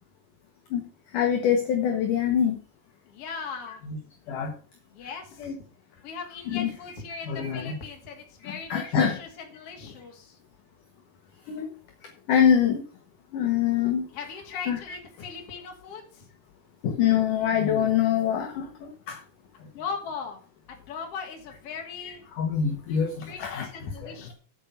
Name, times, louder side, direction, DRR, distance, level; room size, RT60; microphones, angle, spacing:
voice 1, 1.1-2.6 3.9-4.0 4.3-4.5 5.4-5.6 6.5-6.8 7.2-7.8 8.4-9.2 11.5-11.7 12.3-12.8 13.3-14.0 14.5-15.0 16.8-19.2 22.0-23.7 24.0-24.1, left 8 dB, 65° left, 4 dB, 2.5 m, -25 dB
voice 2, 3.1-3.8 4.9-5.5 6.0-10.4 14.1-16.3 19.7-20.4 20.7-22.2 22.9-24.3, left 5 dB, 40° left, 3 dB, 2.8 m, -39 dB
8.5 x 8.0 x 5.6 m, 0.36 s
omnidirectional pair, 4.7 m